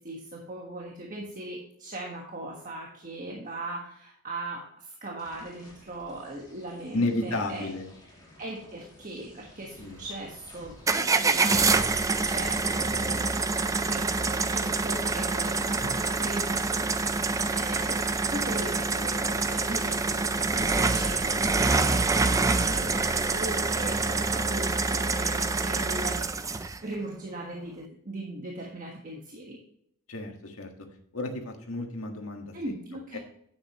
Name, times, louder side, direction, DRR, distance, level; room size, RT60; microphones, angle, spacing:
voice 1, 0.0-7.7 8.4-29.6 32.5-33.2, right 1 dB, 40° right, -1 dB, 1.4 m, -39 dB
sound 1, 5.2-19.2, left 1 dB, 20° left, 2.5 m, -53 dB
voice 2, 6.9-7.9 9.8-10.0 30.1-30.7 31.1-32.5 33.1-33.2, left 2 dB, 85° left, 4 dB, 1.6 m, -32 dB
sound 2, 10.9-26.8, right 3 dB, 15° right, 0.4 m, -26 dB
9.9 x 8.1 x 3.0 m, 0.70 s
head